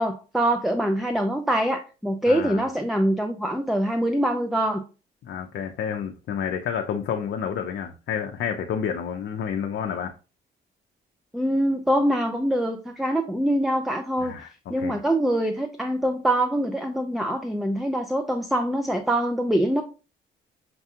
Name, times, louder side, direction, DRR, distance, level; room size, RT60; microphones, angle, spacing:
voice 1, 0.0-4.8 11.3-14.4 14.7-19.8, right 1 dB, ahead, 0.4 m, -24 dB
voice 2, 2.3-2.7 5.2-10.1 14.2-15.0, left 7 dB, 65° left, 0.5 m, -30 dB
5.8 x 2.3 x 2.8 m
cardioid pair, 90°, 20 cm